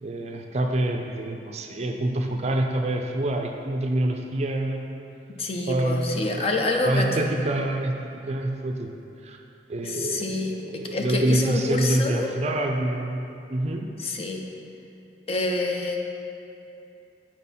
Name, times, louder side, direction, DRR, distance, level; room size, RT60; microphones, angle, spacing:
voice 1, 0.0-4.9 5.7-6.5 6.8-7.9 8.3-8.9 9.2-9.4 9.7-13.2 13.5-13.8, right 1 dB, 35° right, 3 dB, 0.4 m, -26 dB
voice 2, 5.4-7.3 9.8-12.3 14.0-14.5 15.3-16.0, left 2 dB, 35° left, 1 dB, 0.5 m, -27 dB
7.3 x 4.5 x 4.1 m, 2.7 s
head